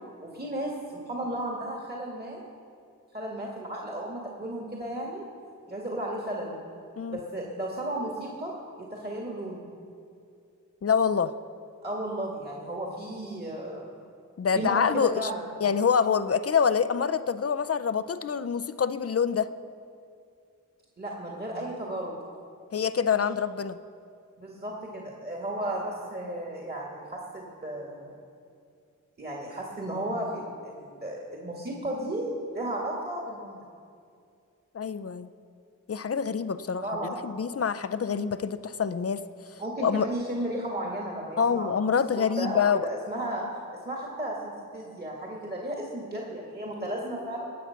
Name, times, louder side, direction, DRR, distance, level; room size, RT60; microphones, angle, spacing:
voice 1, 0.2-2.5 3.1-5.2 5.7-6.5 7.1-9.7 11.8-14.0 14.6-15.5 21.0-22.2 24.4-28.2 29.2-33.6 36.6-37.4 39.6-41.7 42.2-43.5 43.8-47.4, right 1 dB, 30° right, -2 dB, 2.0 m, -34 dB
voice 2, 10.8-11.3 14.4-15.3 15.6-19.5 22.7-23.8 34.7-35.3 35.9-36.9 37.2-39.2 39.8-40.1 41.4-42.9, left 6 dB, 45° left, 13 dB, 0.6 m, -26 dB
19.5 x 7.3 x 5.8 m, 2.3 s
wide cardioid pair, 55°, 32 cm